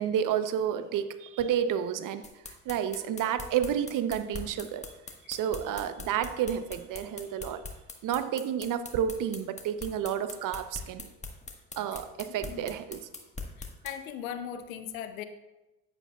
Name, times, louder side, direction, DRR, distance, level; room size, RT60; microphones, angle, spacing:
voice 1, 0.0-2.2 2.7-4.9 5.3-7.6 8.0-11.1 11.8-13.1, right 9 dB, 50° right, 11 dB, 0.7 m, -30 dB
sound 1, 2.2-13.9, left 4 dB, 15° left, 1.4 m, -41 dB
voice 2, 11.9-12.6 13.6-15.2, left 9 dB, 90° left, 10 dB, 0.7 m, -39 dB
9.7 x 8.2 x 2.3 m, 1.0 s
hypercardioid pair, 70°, 40 cm